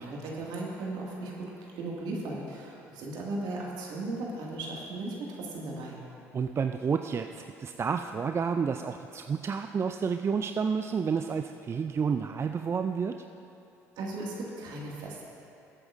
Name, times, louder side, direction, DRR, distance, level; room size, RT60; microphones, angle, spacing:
voice 1, 0.0-1.5 1.8-6.0 14.0-15.2, right 2 dB, 60° right, -3 dB, 2.1 m, -36 dB
voice 2, 6.3-13.2, right 6 dB, 35° right, 7 dB, 0.4 m, -30 dB
19.5 x 8.4 x 2.6 m, 2.7 s
hypercardioid pair, 55°, 8 cm